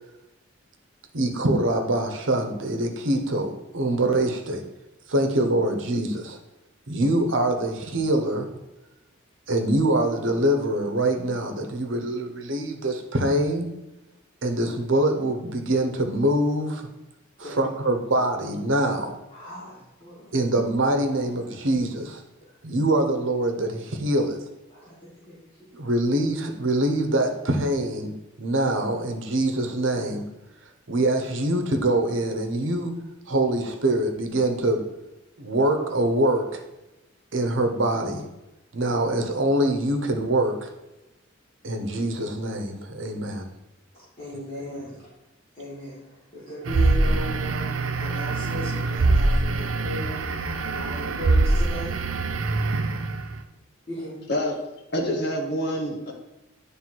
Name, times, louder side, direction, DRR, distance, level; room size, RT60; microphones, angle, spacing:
voice 1, 1.1-4.6 5.1-6.4 6.9-8.5 9.5-13.7 14.4-16.9 17.4-19.1 20.3-22.2 22.6-24.4 25.7-28.1 28.4-30.2 30.9-33.0 33.3-34.8 35.4-36.6 37.3-38.3 38.7-40.7 41.6-43.5 44.6-44.8, right 1 dB, 70° right, 4 dB, 1.0 m, -24 dB
voice 2, 19.3-20.2 24.7-25.0 25.3-25.4 44.2-44.9 45.6-46.0 46.3-47.7 48.0-50.2 50.7-51.9 53.9-54.2, equal, 30° left, -11 dB, 2.5 m, -36 dB
sound 1, 46.7-53.4, right 2 dB, 85° right, 0.6 m, -24 dB
voice 3, 54.9-56.1, equal, 55° left, 1 dB, 1.3 m, -26 dB
9.4 x 3.4 x 4.5 m, 1.0 s
head